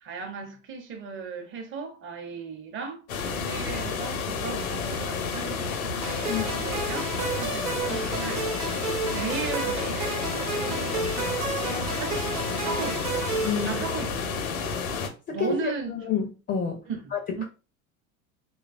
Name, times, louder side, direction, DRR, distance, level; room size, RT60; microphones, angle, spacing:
voice 1, 0.0-8.5 9.1-11.5 11.9-12.3 12.6-13.3 13.6-14.8 15.3-16.0 16.9-17.4, right 5 dB, 30° right, 0.7 m, -37 dB
sound 1, 3.1-15.1, left 5 dB, 75° left, 0.7 m, -30 dB
sound 2, 6.0-14.3, right 4 dB, 85° right, 1.0 m, -32 dB
voice 2, 13.4-13.8 15.3-16.8 17.1-17.4, left 6 dB, 20° left, 0.5 m, -29 dB
3.1 x 2.3 x 2.4 m
figure-of-eight pair, 75°, 42 cm